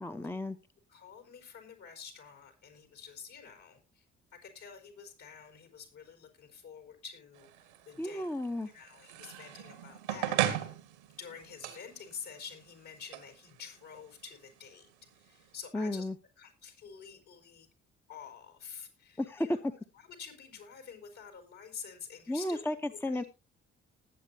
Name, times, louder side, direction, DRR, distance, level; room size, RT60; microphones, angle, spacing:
voice 1, 0.0-0.6 8.0-8.7 15.7-16.2 19.2-19.5 22.3-22.7 23.0-23.2, left 1 dB, 5° left, 9 dB, 0.8 m, -33 dB
voice 2, 0.9-4.0 4.4-8.2 8.7-10.7 11.2-14.9 15.1-16.1 16.4-17.7 18.1-19.6 19.9-23.3, left 6 dB, 60° left, 6 dB, 4.6 m, -49 dB
sound 1, 7.3-15.5, right 12 dB, 80° right, 1.4 m, -38 dB
19.5 x 8.2 x 2.8 m, 0.27 s
hypercardioid pair, 45°, 33 cm